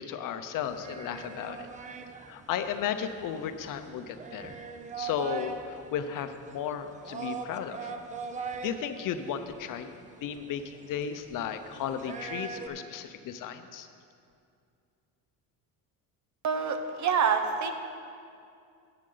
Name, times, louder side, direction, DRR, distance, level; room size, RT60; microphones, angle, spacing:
voice 1, 0.0-1.7 2.3-4.7 5.0-7.9 8.6-9.9 10.2-13.9, left 8 dB, 55° left, 9 dB, 0.7 m, -34 dB
sound 1, 0.6-12.7, right 5 dB, 20° right, 0.4 m, -42 dB
voice 2, 16.4-17.7, right 6 dB, 45° right, 7 dB, 0.9 m, -26 dB
14.0 x 8.8 x 3.9 m, 2.4 s
cardioid pair, 155°, 39 cm